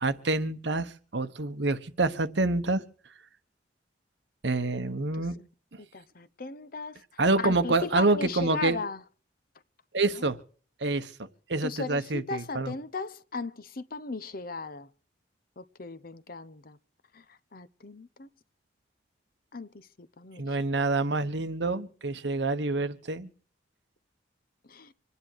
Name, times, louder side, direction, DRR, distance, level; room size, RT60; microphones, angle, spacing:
voice 1, 0.0-2.8 4.4-5.4 7.2-8.8 9.9-10.4 10.8-12.7 20.4-23.3, right 3 dB, 65° right, 1.1 m, -27 dB
voice 2, 5.8-7.0 7.4-9.0 10.1-10.2 11.6-14.9 15.6-16.8 17.1-18.3 19.5-20.6 24.7-24.9, left 4 dB, 50° left, 0.8 m, -37 dB
26.0 x 9.8 x 4.6 m
head